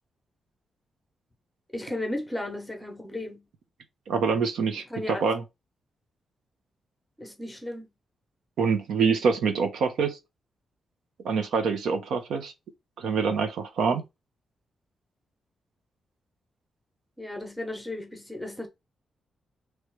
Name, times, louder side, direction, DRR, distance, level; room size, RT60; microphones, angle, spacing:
voice 1, 1.7-3.4 4.8-5.2 7.2-7.9 17.2-18.7, left 1 dB, 5° left, 1.0 m, -35 dB
voice 2, 4.1-5.4 8.6-10.2 11.2-12.5 13.0-14.0, right 5 dB, 85° right, 1.0 m, -25 dB
3.2 x 3.2 x 4.7 m
wide cardioid pair, 175°, 0 cm